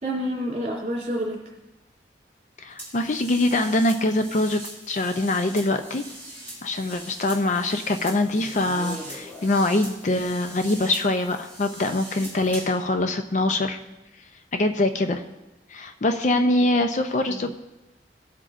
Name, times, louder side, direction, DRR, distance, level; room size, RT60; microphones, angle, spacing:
voice 1, 0.0-1.4 16.3-16.5 17.3-17.5, equal, 40° right, -3 dB, 3.0 m, -29 dB
voice 2, 2.6-4.6 4.9-6.0 6.6-13.8 14.5-15.2 15.7-17.5, left 2 dB, 45° left, 7 dB, 0.5 m, -23 dB
sound 1, 2.8-12.8, right 1 dB, 10° left, 4.2 m, -41 dB
18.0 x 7.8 x 2.5 m, 1.0 s
head